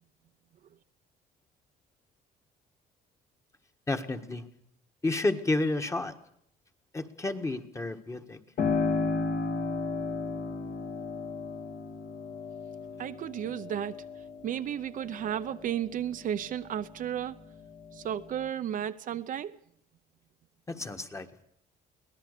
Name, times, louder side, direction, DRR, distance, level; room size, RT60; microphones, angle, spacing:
voice 1, 3.9-4.4 5.0-6.2 6.9-8.4 20.7-21.4, left 2 dB, 15° left, 1.6 m, -31 dB
Piano, 8.6-17.0 17.4-18.5, left 4 dB, 55° left, 2.4 m, -34 dB
voice 2, 13.0-14.0 14.4-17.4 17.9-19.6, right 10 dB, 55° right, 0.7 m, -33 dB
23.5 x 17.5 x 6.7 m
cardioid pair, 110°, 17 cm